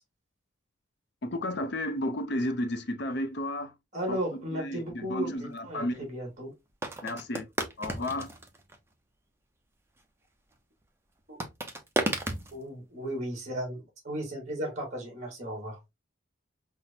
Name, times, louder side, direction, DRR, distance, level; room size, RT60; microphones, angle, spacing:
voice 1, 1.2-3.7 4.1-6.1 7.0-7.5 7.8-8.3, left 1 dB, 55° left, 0.5 m, -33 dB
voice 2, 3.9-6.5 11.3-11.4 12.5-15.8, equal, 35° right, 1.4 m, -35 dB
sound 1, 5.6-5.7 6.8-8.8 11.4-12.6, right 1 dB, 10° right, 0.5 m, -32 dB
5.7 x 2.1 x 2.6 m
head